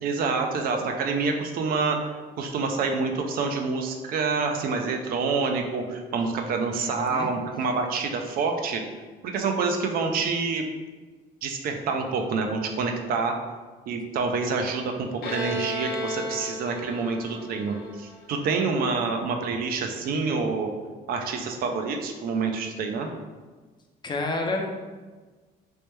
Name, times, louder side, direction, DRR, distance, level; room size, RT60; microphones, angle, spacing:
voice 1, 0.0-2.0 2.4-8.8 9.3-10.6 11.4-13.3 13.9-20.7 21.1-23.1, right 4 dB, 60° right, 4 dB, 0.4 m, -27 dB
voice 2, 6.8-7.3 24.0-24.9, left 2 dB, 25° left, 2 dB, 0.4 m, -30 dB
Bowed string instrument, 15.2-18.8, equal, 75° left, 0.6 m, -34 dB
3.1 x 2.1 x 3.1 m, 1.4 s
cardioid pair, 110°, 17 cm